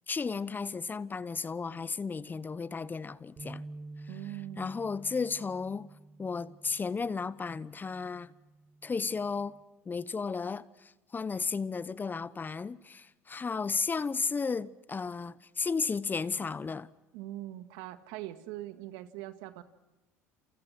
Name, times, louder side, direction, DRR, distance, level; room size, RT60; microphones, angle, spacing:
voice 1, 0.1-3.6 4.6-5.9 6.2-8.3 8.8-9.5 9.9-16.9, left 5 dB, 25° left, 0.9 m, -34 dB
sound 1, 3.4-9.6, right 2 dB, 35° right, 3.3 m, -50 dB
voice 2, 4.1-4.7 17.1-19.6, right 14 dB, 70° right, 1.9 m, -42 dB
28.5 x 28.0 x 6.1 m
hypercardioid pair, 75°, 8 cm